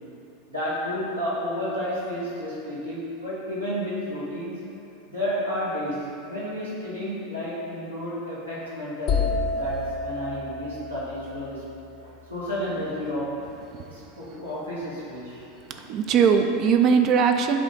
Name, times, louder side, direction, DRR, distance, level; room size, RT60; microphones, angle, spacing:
voice 1, 0.5-4.5 5.1-11.6 12.0-13.4 13.9-15.4 15.7-15.9, equal, 85° right, -9 dB, 1.5 m, -31 dB
sound 1, 9.1-12.9, left 4 dB, 35° left, 0.6 m, -30 dB
voice 2, 13.7-14.1 15.4-17.6, right 6 dB, 40° right, 6 dB, 0.4 m, -21 dB
7.6 x 2.7 x 5.2 m, 2.7 s
figure-of-eight pair, 85°, 0 cm